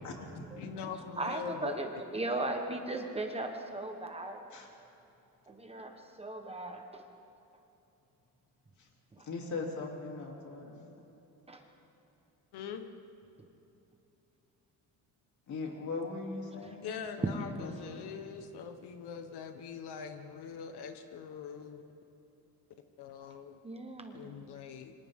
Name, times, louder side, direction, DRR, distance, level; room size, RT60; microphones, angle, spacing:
voice 1, 0.0-0.7 4.5-4.7 8.8-8.9 9.2-10.8 15.5-18.1, left 3 dB, 45° left, 0 dB, 3.2 m, -40 dB
voice 2, 0.6-1.8 12.5-12.9 16.8-21.8 23.0-23.6 24.1-24.9, left 7 dB, 80° left, 6 dB, 1.4 m, -43 dB
voice 3, 1.2-4.4 5.5-7.0 11.5-11.6 23.6-24.3, right 2 dB, 15° right, 3 dB, 1.2 m, -37 dB
28.5 x 25.0 x 3.8 m, 2.9 s
cardioid pair, 175°, 39 cm